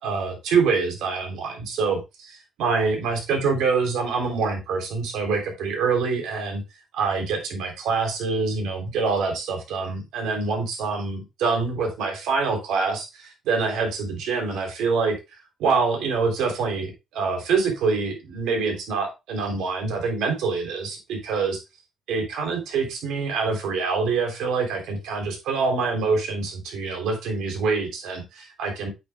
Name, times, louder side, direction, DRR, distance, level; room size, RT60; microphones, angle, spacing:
voice 1, 0.0-6.6 6.9-15.2 15.6-21.6 22.1-28.9, right 4 dB, 90° right, 2 dB, 3.3 m, -25 dB
8.7 x 7.9 x 2.3 m, 0.24 s
cardioid pair, 90°, 0 cm